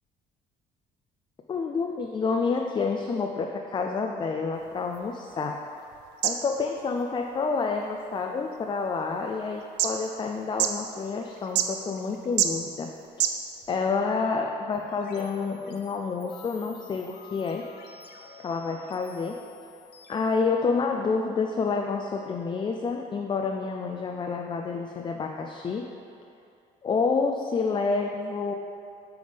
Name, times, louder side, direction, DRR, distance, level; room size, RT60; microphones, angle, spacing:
voice 1, 1.5-5.5 6.2-12.9 13.7-17.6 18.4-19.4 20.1-25.9 26.8-28.5, left 4 dB, 30° left, 2 dB, 0.4 m, -28 dB
sound 1, 4.5-13.8, right 9 dB, 85° right, 0.5 m, -33 dB
sound 2, 14.7-21.1, left 4 dB, 75° left, 0.7 m, -50 dB
7.9 x 3.5 x 5.0 m, 2.6 s
cardioid pair, 110°, 17 cm